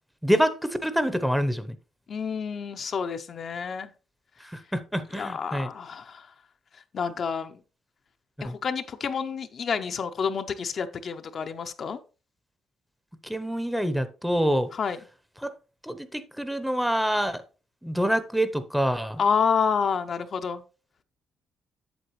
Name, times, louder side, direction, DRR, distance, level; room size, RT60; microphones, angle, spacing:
voice 1, 0.2-1.7 4.4-5.7 8.4-8.5 13.2-14.7 15.4-15.5 15.8-17.4 17.8-19.2, equal, ahead, 12 dB, 0.7 m, -26 dB
voice 2, 2.1-3.9 5.1-6.3 6.9-7.6 8.4-12.0 14.7-15.0 19.2-20.6, left 6 dB, 50° left, 7 dB, 0.6 m, -29 dB
7.9 x 7.5 x 3.0 m, 0.34 s
cardioid pair, 90°, 0 cm